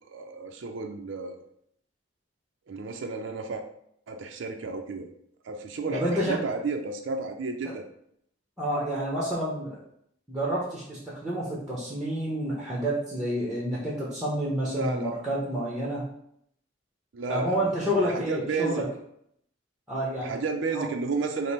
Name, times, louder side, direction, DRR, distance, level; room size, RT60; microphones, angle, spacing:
voice 1, 0.1-1.4 2.7-3.6 4.1-5.1 5.4-7.9 14.7-15.1 17.1-18.8 20.2-21.5, right 4 dB, 75° right, 4 dB, 0.4 m, -32 dB
voice 2, 5.9-6.4 7.6-7.7 8.6-9.8 10.3-16.0 17.3-18.8 19.9-20.4 20.7-20.8, equal, ahead, -5 dB, 0.8 m, -29 dB
5.0 x 2.0 x 4.2 m, 0.71 s
head